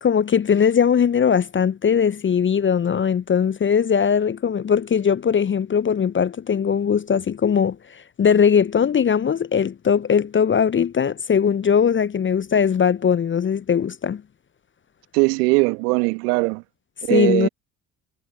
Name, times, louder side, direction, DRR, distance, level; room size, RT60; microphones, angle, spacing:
voice 1, 0.0-14.2 17.1-17.5, left 7 dB, 25° left, 0.7 m, -20 dB
voice 2, 15.1-16.6 17.1-17.5, right 28 dB, 70° right, 2.1 m, -20 dB
figure-of-eight pair, 45°, 47 cm